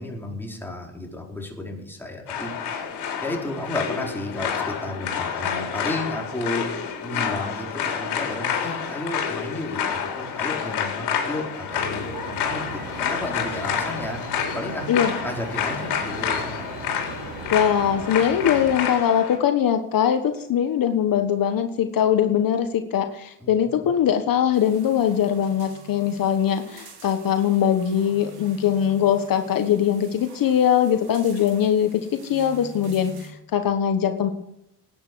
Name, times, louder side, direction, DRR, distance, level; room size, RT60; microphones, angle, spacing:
voice 1, 0.0-2.8 3.2-16.6 23.4-23.5, left 1 dB, 5° left, -1 dB, 4.4 m, -33 dB
sound 1, 2.3-19.4, left 7 dB, 75° left, 4.2 m, -29 dB
sound 2, 11.7-18.8, right 4 dB, 85° right, 3.7 m, -38 dB
voice 2, 17.5-34.3, left 9 dB, 60° left, 6 dB, 1.4 m, -21 dB
sound 3, 24.5-33.3, right 4 dB, 70° right, 4.8 m, -47 dB
18.5 x 9.3 x 6.3 m, 0.80 s
cardioid pair, 115°, 39 cm